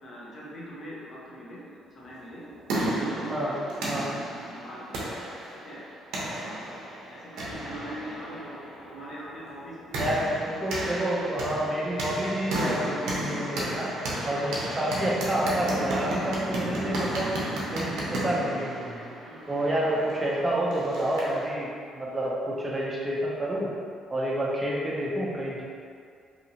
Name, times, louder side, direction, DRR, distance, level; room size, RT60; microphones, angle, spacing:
voice 1, 0.0-4.2 4.5-5.1 5.5-5.8 6.3-6.7 7.1-10.6 19.2-19.4, equal, 40° left, -6 dB, 0.7 m, -43 dB
sound 1, 2.2-21.5, right 1 dB, 90° right, 0.6 m, -33 dB
voice 2, 10.0-13.9 14.2-17.3 17.7-19.0 19.5-23.7 24.1-25.6, right 1 dB, 20° right, -5 dB, 0.4 m, -29 dB
2.7 x 2.7 x 2.7 m, 2.3 s
cardioid pair, 130°, 0 cm